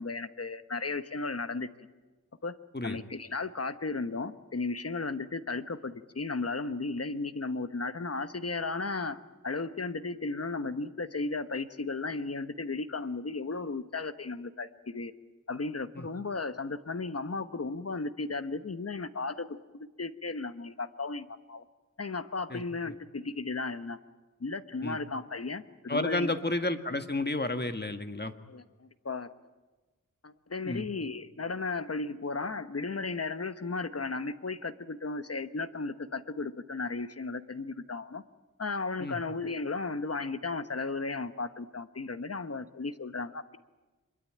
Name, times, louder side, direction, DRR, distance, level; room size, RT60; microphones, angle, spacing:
voice 1, 0.0-1.7 2.4-2.6 2.8-15.1 15.5-21.6 22.0-24.0 24.4-26.3 28.5-29.3 30.2-38.2 38.6-43.6, left 3 dB, 50° left, 11 dB, 1.2 m, -35 dB
voice 2, 25.9-28.3 30.6-30.9 39.0-39.2, left 2 dB, 30° left, 8 dB, 1.6 m, -31 dB
25.0 x 22.5 x 8.8 m, 1.2 s
wide cardioid pair, 70°, 32 cm